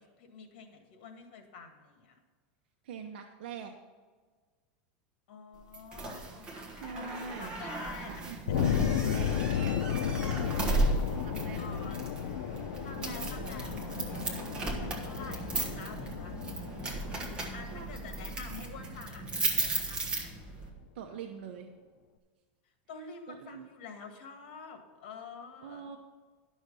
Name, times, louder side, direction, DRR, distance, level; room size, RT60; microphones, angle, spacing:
voice 1, 0.0-2.2 5.3-8.6 11.6-16.4 17.4-19.2 19.6-20.3 22.9-25.9, left 5 dB, 65° left, 5 dB, 1.9 m, -48 dB
voice 2, 2.8-3.7 6.8-7.5 8.0-8.6 8.9-9.8 10.0-10.8 11.1-11.9 13.0-13.1 17.7-17.9 20.9-21.7 23.3-23.7 25.6-26.0, right 6 dB, 75° right, 4 dB, 0.8 m, -44 dB
sound 1, 5.7-20.7, right 2 dB, 15° right, 1.4 m, -35 dB
sound 2, 8.5-19.2, left 9 dB, 85° left, 0.5 m, -34 dB
11.0 x 6.4 x 5.4 m, 1.5 s
supercardioid pair, 165°, 6 cm